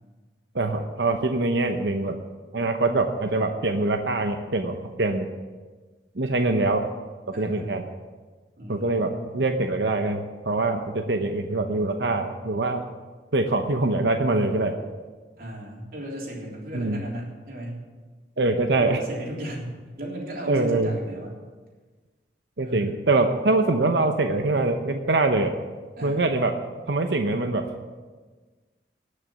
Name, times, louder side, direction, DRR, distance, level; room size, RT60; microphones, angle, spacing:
voice 1, 0.5-2.1 2.5-5.3 6.2-6.9 7.4-7.8 8.7-12.8 13.3-14.7 16.7-17.0 18.4-19.0 20.5-20.9 22.6-25.5 26.0-26.5 26.9-27.6, right 2 dB, 75° right, 5 dB, 0.9 m, -24 dB
voice 2, 7.3-7.7 8.6-9.3 15.4-17.8 18.7-19.7 20.0-21.4 22.6-23.0 26.0-26.2, right 1 dB, 55° right, -2 dB, 3.5 m, -35 dB
19.0 x 6.7 x 7.2 m, 1.4 s
head